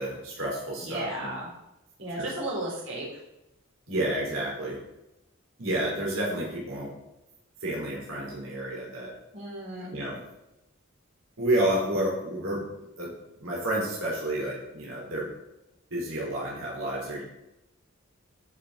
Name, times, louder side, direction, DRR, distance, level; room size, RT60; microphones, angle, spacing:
voice 1, 0.0-1.3 2.2-2.3 3.9-4.8 5.6-6.9 7.6-9.1 9.9-10.2 11.4-12.7 13.0-15.3 15.9-17.2, right 1 dB, 90° right, -4 dB, 3.6 m, -30 dB
voice 2, 0.8-1.5 2.0-3.1 9.3-10.0, right 1 dB, 65° right, -4 dB, 3.7 m, -34 dB
14.5 x 6.0 x 3.9 m, 0.91 s
head